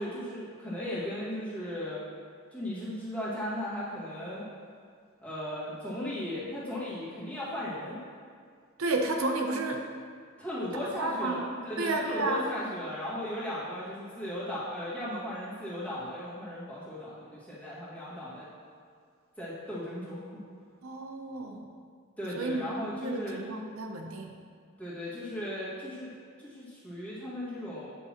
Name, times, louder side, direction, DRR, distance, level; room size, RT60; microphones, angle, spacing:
voice 1, 0.0-2.0 2.5-4.4 5.2-8.0 10.4-18.5 19.4-20.2 22.2-23.4 24.8-26.1 26.4-27.9, left 1 dB, 5° left, -10 dB, 1.9 m, -36 dB
voice 2, 8.8-9.9 11.0-12.5 20.8-21.7 22.4-22.6 23.0-24.4, right 2 dB, 80° right, 3 dB, 0.8 m, -32 dB
9.0 x 6.8 x 3.0 m, 2.1 s
head